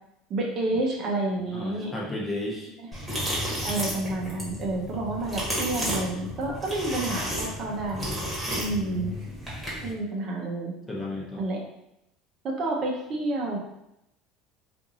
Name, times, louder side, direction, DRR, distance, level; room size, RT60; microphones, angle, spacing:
voice 1, 0.3-1.9 2.8-2.9 3.4-8.1 8.5-9.1 9.8-10.7 11.4-11.6 12.4-13.6, right 2 dB, 45° right, -1 dB, 0.7 m, -29 dB
voice 2, 1.5-2.7 8.7-9.1 10.9-11.4, left 1 dB, 15° left, -4 dB, 0.7 m, -33 dB
sound 1, 2.9-9.9, equal, 5° right, 1.1 m, -32 dB
2.6 x 2.5 x 2.7 m, 0.84 s
supercardioid pair, 115°, 0 cm